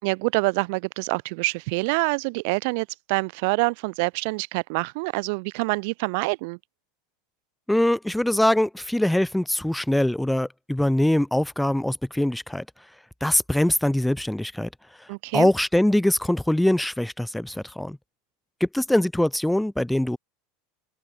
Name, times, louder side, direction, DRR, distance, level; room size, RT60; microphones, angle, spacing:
voice 1, 0.0-6.6 15.1-15.5, right 29 dB, 60° right, 5.6 m, -26 dB
voice 2, 7.7-12.6 13.2-14.7 15.3-18.0 18.6-20.2, left 1 dB, 5° left, 6.8 m, -23 dB
hypercardioid pair, 90°, 0 cm